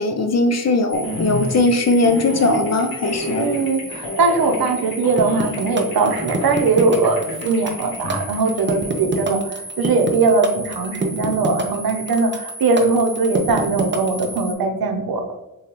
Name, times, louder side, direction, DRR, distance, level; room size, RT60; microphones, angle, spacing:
voice 1, 0.0-3.5, left 2 dB, 45° left, 6 dB, 0.5 m, -19 dB
sound 1, 0.9-9.3, left 2 dB, 85° left, 0.9 m, -31 dB
sound 2, 0.9-14.5, right 1 dB, 5° right, 1.3 m, -35 dB
voice 2, 3.4-15.3, right 4 dB, 80° right, 4 dB, 0.7 m, -20 dB
sound 3, 5.2-14.4, right 3 dB, 35° right, 0.5 m, -25 dB
6.5 x 2.3 x 3.0 m, 0.93 s
wide cardioid pair, 135°, 36 cm